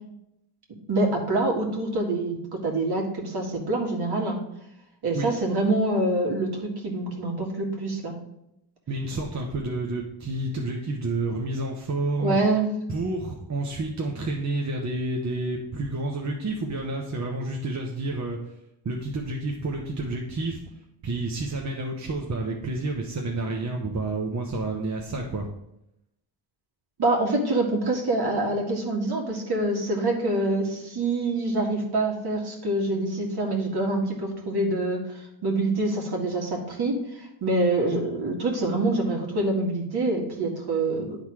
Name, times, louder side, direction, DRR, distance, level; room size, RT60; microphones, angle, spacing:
voice 1, 0.9-4.4 5.0-8.1 12.2-12.7 27.0-41.2, right 2 dB, 60° right, 1 dB, 2.0 m, -26 dB
voice 2, 8.9-12.4 12.9-18.4 18.8-20.6 21.0-25.5, right 2 dB, 40° right, 0 dB, 1.0 m, -29 dB
10.5 x 4.0 x 4.8 m, 0.82 s
wide cardioid pair, 120°, 43 cm